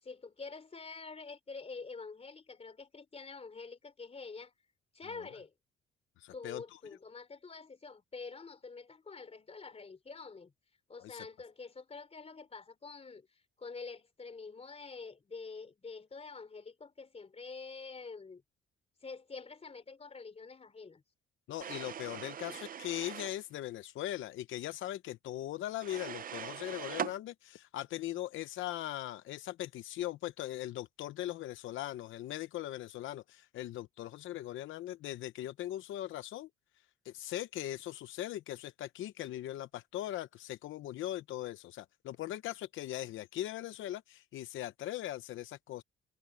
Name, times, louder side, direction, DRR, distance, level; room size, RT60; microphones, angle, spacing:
voice 1, 0.0-4.5 4.9-5.5 6.3-10.5 10.9-13.3 13.6-18.4 19.0-21.0, left 4 dB, 30° left, 3.8 m, -47 dB
voice 2, 6.2-6.6 11.0-11.3 21.5-36.5 37.0-45.8, left 13 dB, 80° left, 0.8 m, -40 dB
sound 1, 21.6-23.4 25.8-27.2, right 8 dB, 45° right, 0.6 m, -41 dB
cardioid pair, 90°, 20 cm